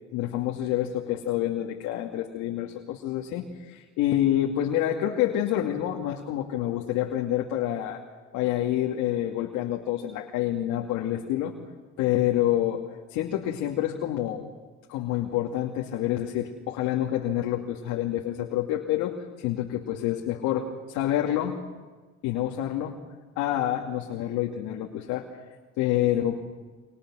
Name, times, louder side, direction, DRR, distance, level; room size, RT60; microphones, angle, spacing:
voice 1, 0.1-8.0 8.3-11.5 12.0-12.8 13.1-14.5 14.9-21.6 22.2-23.0 23.4-25.3 25.8-26.4, left 12 dB, 75° left, 1 dB, 2.5 m, -27 dB
29.5 x 26.5 x 6.4 m, 1.4 s
supercardioid pair, 90°, 29 cm